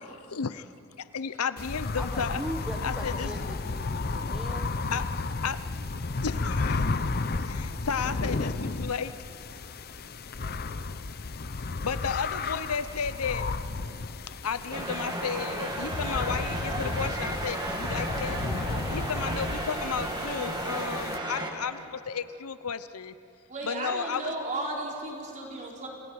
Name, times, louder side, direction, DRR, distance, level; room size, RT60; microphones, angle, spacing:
voice 1, 0.4-0.7 1.0-2.4 2.8-3.3 4.9-5.0 5.4-5.6 6.2-6.8 7.5-9.1 11.8-13.5 14.4-18.4 18.9-23.1 23.6-24.3, left 6 dB, 80° left, 13 dB, 0.7 m, -33 dB
sound 1, 1.6-21.2, left 3 dB, 45° left, 0.7 m, -33 dB
voice 2, 2.0-4.7, equal, 5° right, 1 dB, 1.1 m, -39 dB
sound 2, 14.7-21.5, right 1 dB, 20° right, 2.2 m, -33 dB
voice 3, 23.5-25.9, right 2 dB, 35° right, -2 dB, 4.2 m, -35 dB
29.0 x 29.0 x 4.8 m, 2.8 s
head